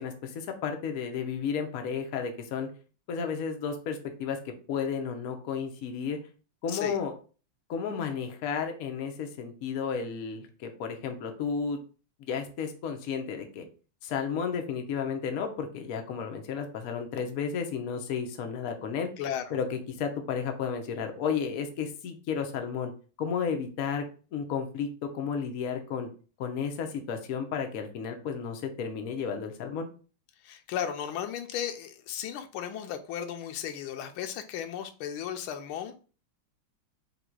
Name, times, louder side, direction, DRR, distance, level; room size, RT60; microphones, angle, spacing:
voice 1, 0.0-2.7 3.1-4.4 4.7-6.2 6.6-7.1 7.7-11.8 12.2-13.7 14.0-19.1 19.5-22.9 23.2-24.0 24.3-26.1 26.4-29.9, left 6 dB, 65° left, 5 dB, 0.8 m, -32 dB
voice 2, 19.2-19.6 30.4-35.9, left 9 dB, 85° left, 7 dB, 1.4 m, -35 dB
3.9 x 2.3 x 4.4 m, 0.37 s
omnidirectional pair, 2.3 m